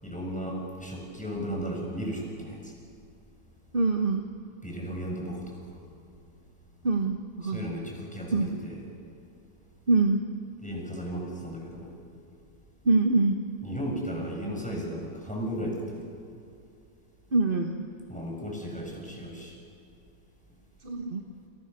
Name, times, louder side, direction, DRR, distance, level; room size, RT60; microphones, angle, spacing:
voice 1, 0.0-2.8 4.6-5.8 7.4-8.8 10.6-11.9 13.6-16.1 18.1-19.6, equal, 5° left, -1 dB, 6.9 m, -35 dB
voice 2, 3.7-4.2 6.8-7.7 8.3-8.6 9.9-10.2 12.8-13.4 17.3-17.9 20.8-21.2, right 3 dB, 30° right, 3 dB, 1.5 m, -24 dB
29.0 x 29.0 x 6.9 m, 2.5 s
omnidirectional pair, 1.9 m